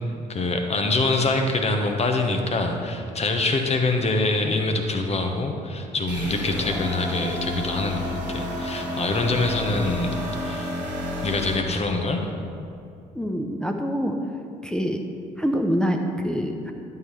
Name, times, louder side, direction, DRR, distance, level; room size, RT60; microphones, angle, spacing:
voice 1, 0.3-10.2 10.4-10.7 11.2-12.3, left 2 dB, 30° left, 4 dB, 1.1 m, -25 dB
sound 1, 6.1-11.6, left 1 dB, 90° right, 1.1 m, -30 dB
voice 2, 13.1-14.2 14.6-15.0 15.4-16.7, equal, 5° left, 2 dB, 0.8 m, -25 dB
11.0 x 5.7 x 4.6 m, 2.5 s
figure-of-eight pair, 45°, 21 cm